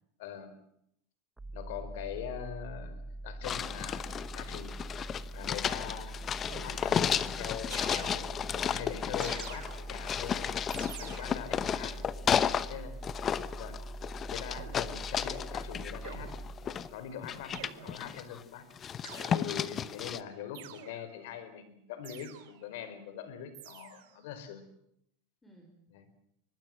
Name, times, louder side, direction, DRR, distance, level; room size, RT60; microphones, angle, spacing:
voice 1, 0.2-0.6 1.5-4.7 5.3-6.2 6.6-10.6 11.0-12.0 12.7-13.0 13.6-13.8 14.3-16.3 16.6-18.6 19.3-24.6 25.9-26.1, left 9 dB, 70° left, 12 dB, 4.5 m, -43 dB
sound 1, 1.4-17.2, right 1 dB, 10° right, 0.8 m, -43 dB
sound 2, 3.4-12.7 13.0-16.9 17.2-18.4 18.8-20.2, left 8 dB, 30° left, 1.0 m, -33 dB
sound 3, 6.5-7.1 7.7-8.6 9.2-10.1 10.7-11.6 14.5-15.0 16.0-16.8 17.5-18.2 19.0-19.8 20.5-21.2 22.0-22.7 23.5-24.2, right 12 dB, 75° right, 3.4 m, -48 dB
voice 2, 11.7-12.7 19.6-20.1 25.4-25.8, equal, 10° left, 4 dB, 4.2 m, -58 dB
24.5 x 20.5 x 7.8 m, 0.74 s
supercardioid pair, 135°, 0 cm